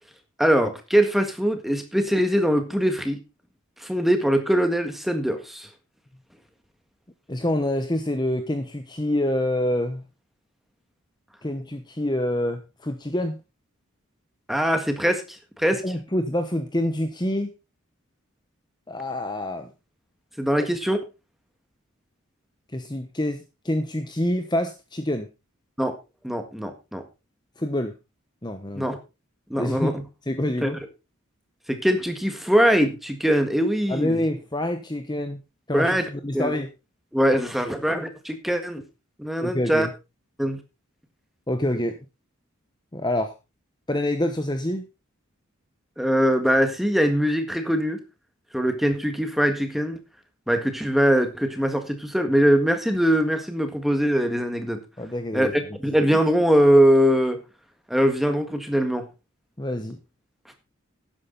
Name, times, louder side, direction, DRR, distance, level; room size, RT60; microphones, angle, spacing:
voice 1, 0.4-3.2 3.8-5.7 14.5-15.8 20.4-21.0 25.8-26.0 26.2-27.0 28.7-29.0 29.5-30.0 30.6-30.7 31.7-34.2 35.7-36.1 36.3-36.5 37.1-38.8 39.2-39.9 40.4-40.6 46.0-48.0 48.5-50.0 50.5-54.8 55.3-57.4 57.9-59.1, equal, ahead, 6 dB, 1.6 m, -22 dB
voice 2, 7.3-10.0 11.4-13.4 15.8-17.5 18.9-19.7 22.7-25.3 27.6-27.9 28.4-28.9 29.5-30.0 30.3-30.8 33.9-35.4 35.7-36.7 37.6-37.8 39.4-39.9 41.5-42.0 42.9-43.3 43.9-44.9 55.0-55.5 59.6-60.0, left 1 dB, 20° left, 7 dB, 1.0 m, -26 dB
12.5 x 10.0 x 4.0 m, 0.28 s
head